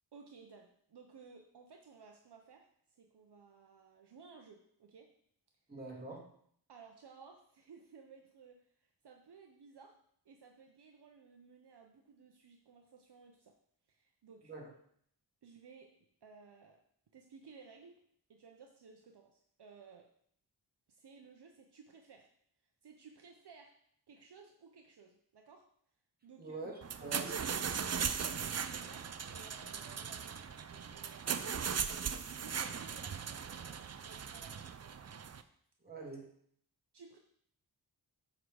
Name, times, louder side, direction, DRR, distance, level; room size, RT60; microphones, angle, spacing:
voice 1, 0.1-5.1 6.7-10.0 10.2-13.6 13.9-14.5 15.4-15.9 16.2-16.8 17.1-18.0 18.3-20.1 20.9-22.3 22.8-23.7 24.1-25.7 26.2-26.6 27.0-27.3 28.0-35.0 36.9-37.2, right 5 dB, 65° right, 3 dB, 0.9 m, -57 dB
voice 2, 5.7-6.3 14.5-14.7 26.4-27.5 35.8-36.3, right 2 dB, 20° right, -3 dB, 2.4 m, -45 dB
sound 1, 26.8-35.4, right 6 dB, 40° right, 0.5 m, -38 dB
8.0 x 3.9 x 6.3 m, 0.65 s
wide cardioid pair, 95°, 43 cm